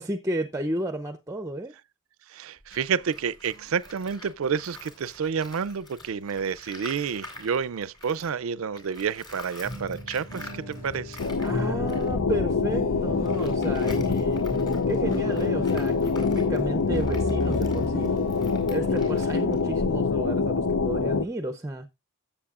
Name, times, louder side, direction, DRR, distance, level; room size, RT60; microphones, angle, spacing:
voice 1, 0.0-1.7 11.4-14.4 14.9-18.1 18.7-21.9, right 1 dB, 15° right, 0.5 m, -32 dB
voice 2, 2.3-11.2, right 6 dB, 85° right, 0.4 m, -29 dB
Tools, 2.6-8.4 8.7-20.2, left 2 dB, 20° left, 4.2 m, -47 dB
sound 1, 9.6-19.1, equal, 40° left, 6.2 m, -36 dB
sound 2, 11.2-21.2, left 4 dB, 85° left, 0.6 m, -25 dB
15.5 x 7.3 x 2.4 m
head